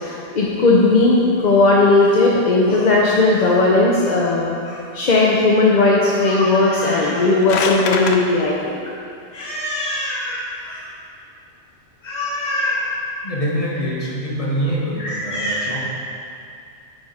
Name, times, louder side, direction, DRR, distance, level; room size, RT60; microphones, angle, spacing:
voice 1, 0.0-8.8 9.3-10.8 12.0-12.9 15.0-15.8, left 2 dB, 45° left, -4 dB, 0.6 m, -17 dB
sound 1, 7.1-8.2, left 5 dB, 75° left, 0.9 m, -24 dB
voice 2, 13.2-15.8, equal, 30° left, -6 dB, 1.5 m, -24 dB
9.6 x 5.0 x 4.0 m, 2.5 s
omnidirectional pair, 1.3 m